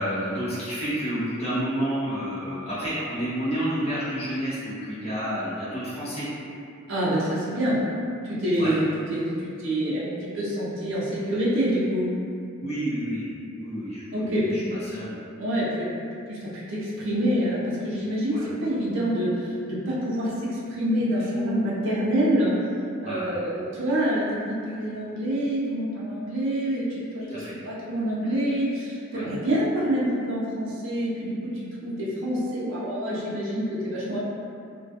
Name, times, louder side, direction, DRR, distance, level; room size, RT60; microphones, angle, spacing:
voice 1, 0.0-6.3 8.5-8.8 12.6-13.2 13.6-15.5 18.3-18.5 21.2-21.3 23.0-23.3 27.3-27.5 29.1-29.3, equal, 30° left, -12 dB, 0.6 m, -30 dB
voice 2, 6.9-7.9 8.2-12.2 14.1-14.6 15.4-16.0 16.3-22.6 23.0-31.5 31.8-34.2, equal, 60° right, -7 dB, 0.5 m, -26 dB
2.3 x 2.2 x 2.6 m, 2.4 s
head